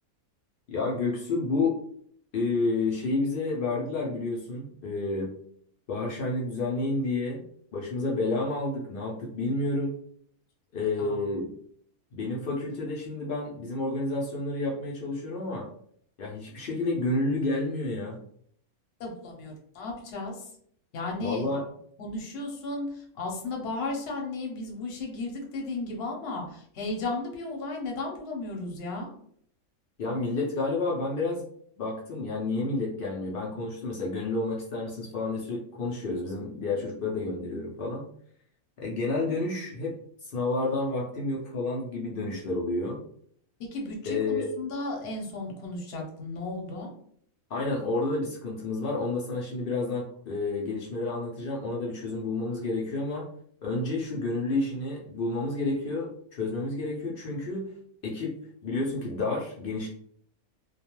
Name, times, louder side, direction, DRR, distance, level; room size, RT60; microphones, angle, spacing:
voice 1, 0.7-1.8 2.3-5.3 5.9-7.4 7.7-10.0 10.7-11.5 12.1-15.7 16.2-18.2 21.2-21.7 30.0-31.4 31.8-38.1 38.8-39.9 40.2-43.0 44.1-44.5 47.5-53.3 53.6-57.7 58.0-58.4 58.6-59.9, left 2 dB, 85° left, -2 dB, 0.4 m, -30 dB
voice 2, 19.0-20.5 20.9-21.5 22.0-29.1 43.7-46.9, left 2 dB, 55° left, 0 dB, 0.8 m, -34 dB
2.3 x 2.2 x 2.9 m, 0.64 s
omnidirectional pair, 1.6 m